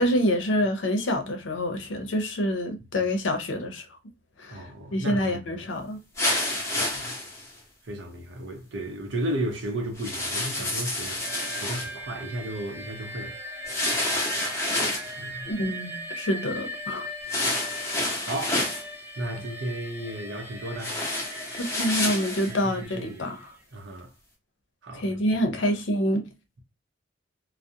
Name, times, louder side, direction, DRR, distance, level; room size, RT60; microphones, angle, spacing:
voice 1, 0.0-3.8 4.4-4.6 4.9-6.0 15.5-17.1 21.6-23.5 24.9-26.3, equal, 85° left, 0.6 m, -27 dB
voice 2, 4.5-5.4 6.8-7.2 7.8-13.4 15.2-15.5 17.4-17.5 18.2-18.7 19.2-21.0 22.5-23.3 23.7-24.1 24.8-25.2, right 1 dB, 75° right, 0.6 m, -34 dB
sound 1, 6.2-7.5 10.0-11.9 13.6-15.1 17.3-18.8 20.8-22.5, left 1 dB, 15° left, 0.7 m, -28 dB
sound 2, 11.2-23.6, equal, 10° right, 0.4 m, -39 dB
2.3 x 2.0 x 2.7 m
head